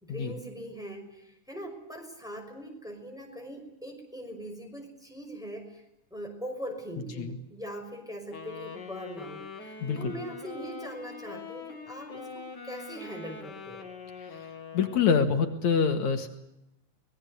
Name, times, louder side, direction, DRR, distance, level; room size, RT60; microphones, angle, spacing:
voice 1, 0.0-5.8 6.1-13.8, equal, ahead, 2 dB, 5.6 m, -41 dB
Wind instrument woodwind instrument, 8.3-15.3, left 5 dB, 35° left, 2.9 m, -43 dB
voice 2, 9.8-10.1 14.7-16.3, left 6 dB, 75° left, 6 dB, 3.2 m, -25 dB
25.0 x 20.5 x 8.2 m, 0.86 s
omnidirectional pair, 3.4 m